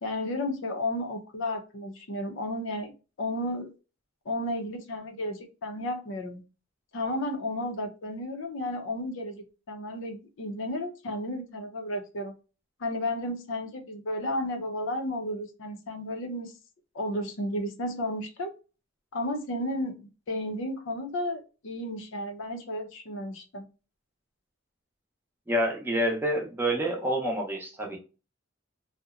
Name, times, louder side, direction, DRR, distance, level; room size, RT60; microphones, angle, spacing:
voice 1, 0.0-2.9 3.2-3.7 4.3-6.4 6.9-12.3 12.8-16.5 16.9-18.5 19.1-20.0 20.3-23.7, left 1 dB, 65° left, 5 dB, 0.5 m, -33 dB
voice 2, 25.5-28.0, equal, 10° right, -1 dB, 0.6 m, -28 dB
2.7 x 2.0 x 2.3 m, 0.32 s
head